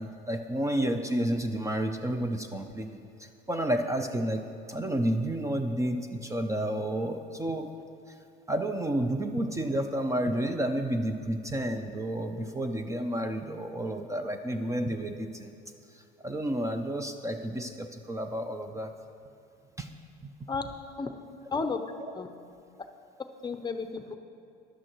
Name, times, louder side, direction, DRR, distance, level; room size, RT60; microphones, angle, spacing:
voice 1, 0.0-4.4 4.7-7.7 8.5-15.5 15.9-18.9 19.8-19.9 20.2-20.3, right 1 dB, 15° right, 7 dB, 0.6 m, -31 dB
voice 2, 21.5-21.8 22.1-22.3 23.4-24.2, left 4 dB, 20° left, 7 dB, 0.7 m, -32 dB
15.5 x 11.5 x 3.1 m, 2.5 s
supercardioid pair, 100°, 21 cm